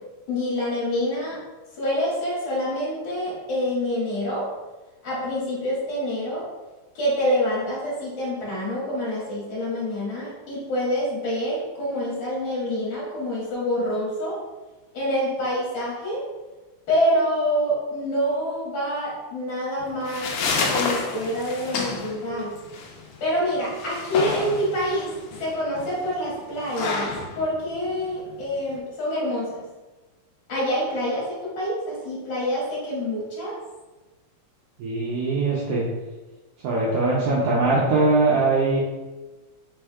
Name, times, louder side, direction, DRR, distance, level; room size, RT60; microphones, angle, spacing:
voice 1, 0.3-1.4 1.7-4.5 5.0-6.5 6.9-14.4 14.9-16.2 16.9-20.3 20.7-22.6 23.2-25.1 25.4-29.6 30.5-33.5, equal, 40° left, -7 dB, 1.7 m, -26 dB
sound 1, 19.8-28.8, left 4 dB, 80° left, 1.7 m, -30 dB
voice 2, 34.8-35.8 36.6-38.8, right 3 dB, 90° right, -5 dB, 1.3 m, -21 dB
4.8 x 3.4 x 2.2 m, 1.2 s
omnidirectional pair, 3.4 m